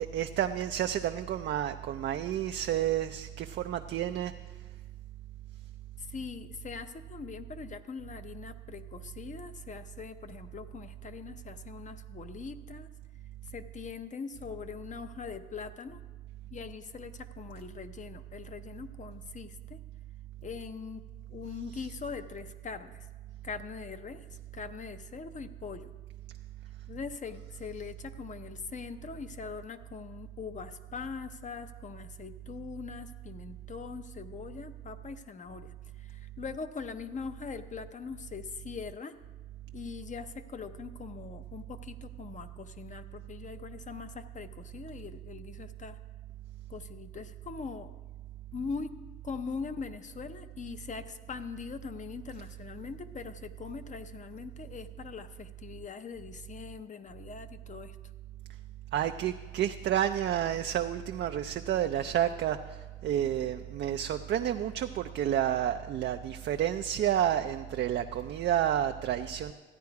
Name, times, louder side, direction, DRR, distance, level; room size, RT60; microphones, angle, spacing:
voice 1, 0.0-4.3 58.9-69.5, right 10 dB, 60° right, 6 dB, 0.4 m, -30 dB
voice 2, 6.0-12.9 13.4-16.0 16.5-19.8 20.4-21.0 21.3-23.1 23.4-24.2 24.5-25.9 26.9-39.1 39.7-46.0 46.7-47.9 48.5-48.9 49.2-58.0, left 5 dB, 40° left, 10 dB, 0.7 m, -42 dB
14.0 x 9.5 x 4.7 m, 1.4 s
cardioid pair, 90°, 20 cm